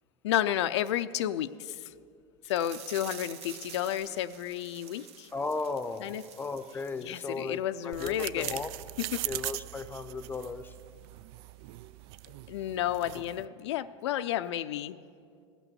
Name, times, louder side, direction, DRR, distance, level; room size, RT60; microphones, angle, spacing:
voice 1, 0.2-1.9 2.4-5.3 6.0-6.2 7.0-8.6 9.0-9.3 12.3-15.0, left 12 dB, 85° left, 11 dB, 0.4 m, -32 dB
sound 1, 2.4-7.5 7.8-7.9 8.3-8.4, right 7 dB, 45° right, 1.0 m, -48 dB
voice 2, 5.3-8.7 9.2-10.7 13.1-13.2, left 4 dB, 15° left, 12 dB, 0.7 m, -36 dB
sound 2, 7.9-13.5, right 16 dB, 65° right, 0.4 m, -40 dB
16.0 x 6.0 x 9.4 m, 2.3 s
hypercardioid pair, 100°, 14 cm